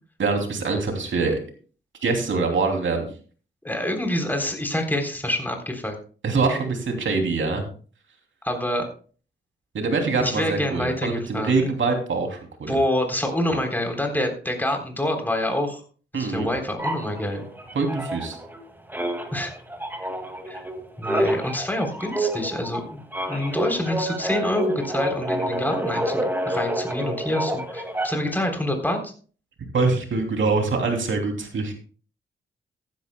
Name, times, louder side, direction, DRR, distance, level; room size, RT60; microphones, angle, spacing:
voice 1, 0.2-1.4 2.0-3.1 6.2-7.6 9.7-12.7 16.1-16.5 17.7-18.4 29.7-31.7, right 4 dB, 70° right, 3 dB, 2.9 m, -24 dB
voice 2, 3.6-5.9 8.4-8.9 10.2-11.7 12.7-15.8 16.1-17.4 19.3-19.5 20.5-20.6 21.0-29.1, left 1 dB, 10° left, 3 dB, 3.5 m, -27 dB
sound 1, 16.8-18.6 18.9-28.4, right 1 dB, 10° right, 2.2 m, -28 dB
14.5 x 11.5 x 2.3 m, 0.40 s
cardioid pair, 60°, 20 cm